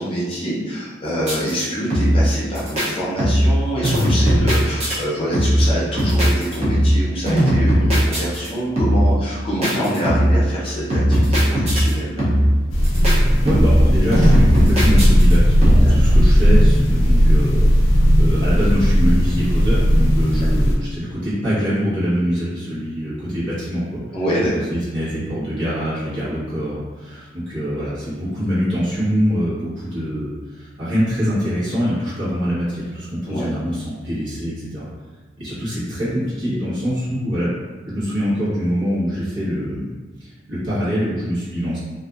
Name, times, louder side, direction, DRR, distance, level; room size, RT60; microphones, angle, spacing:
voice 1, 0.0-12.3 15.8-15.9 20.4-20.5 24.1-24.5 33.3-33.5, equal, 30° left, -7 dB, 0.5 m, -25 dB
sound 1, 1.2-1.6 1.9-2.3 2.6-2.9 3.2-3.6 3.8-5.0 5.3-5.7 6.0-7.0 7.3-8.5 8.8-9.1 9.6-10.4 10.9-11.9 12.2-12.6 12.8-13.2 13.5-13.9 14.1-15.3 15.6-16.0, equal, 30° right, 0.6 m, -17 dB
sound 2, 12.7-20.7, equal, 90° left, 0.5 m, -15 dB
voice 2, 13.4-24.0 24.5-34.9 35.4-37.5 37.9-39.9 40.2-41.8, equal, 70° right, -10 dB, 1.2 m, -24 dB
2.5 x 2.4 x 2.3 m, 1.3 s
head